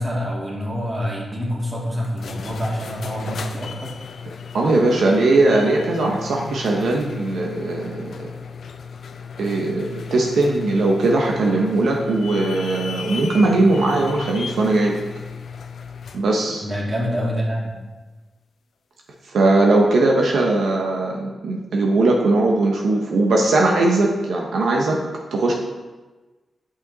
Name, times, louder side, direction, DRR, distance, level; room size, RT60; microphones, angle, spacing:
voice 1, 0.0-3.9 16.6-17.8, equal, 30° right, -3 dB, 2.4 m, -26 dB
sound 1, 2.0-16.3, left 6 dB, 75° left, 0.6 m, -35 dB
voice 2, 4.5-8.3 9.4-15.0 16.1-16.6 19.2-25.0 25.3-25.5, right 2 dB, 80° right, -1 dB, 1.0 m, -19 dB
8.6 x 5.7 x 4.1 m, 1.2 s
cardioid pair, 75°, 0 cm